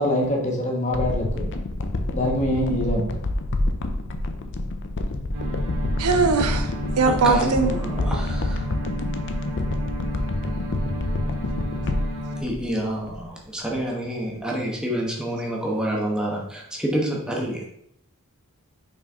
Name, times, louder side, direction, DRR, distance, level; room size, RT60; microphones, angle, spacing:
voice 1, 0.0-1.5 2.1-3.1, left 1 dB, 35° left, -1 dB, 1.3 m, -24 dB
sound 1, 0.9-13.4 13.7-13.8, left 1 dB, 55° left, 0.6 m, -28 dB
sound 2, 5.3-12.4, equal, 50° right, 2.3 m, -33 dB
voice 2, 6.0-7.7, right 4 dB, 85° right, 8 dB, 0.7 m, -21 dB
voice 3, 7.0-8.6 12.4-17.6, right 1 dB, 5° right, -2 dB, 1.2 m, -28 dB
5.8 x 4.4 x 3.7 m, 0.74 s
head